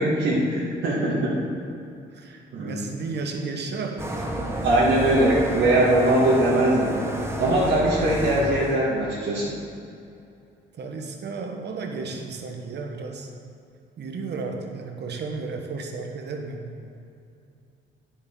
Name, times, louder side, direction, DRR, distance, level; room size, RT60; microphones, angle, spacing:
voice 1, 0.0-1.3 2.5-2.9 4.6-9.5, right 1 dB, 75° right, -8 dB, 1.8 m, -21 dB
voice 2, 2.1-4.6 10.8-13.3 14.0-16.7, right 4 dB, 60° right, 3 dB, 1.2 m, -33 dB
sound 1, 4.0-8.8, right 1 dB, 10° right, 1.1 m, -30 dB
9.6 x 8.4 x 3.8 m, 2.6 s
cardioid pair, 90°, 20 cm